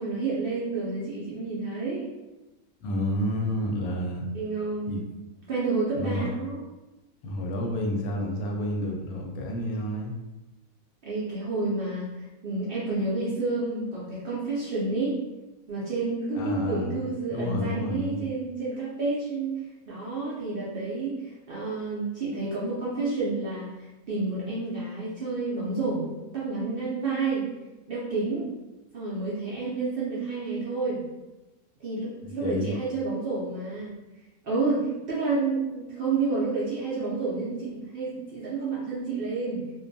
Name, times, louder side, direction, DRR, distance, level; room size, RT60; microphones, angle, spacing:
voice 1, 0.0-2.1 4.3-5.0 5.5-6.6 11.0-15.2 15.7-19.6 19.9-27.4 27.9-28.5 28.9-31.0 31.8-33.9 34.4-39.6, right 3 dB, 65° right, -7 dB, 0.6 m, -30 dB
voice 2, 2.8-4.3 4.9-5.0 5.9-6.3 7.2-10.1 16.3-17.0 17.3-18.3 32.2-32.7, left 1 dB, 85° left, 0 dB, 1.0 m, -30 dB
2.5 x 2.2 x 2.6 m, 1.0 s
omnidirectional pair, 1.5 m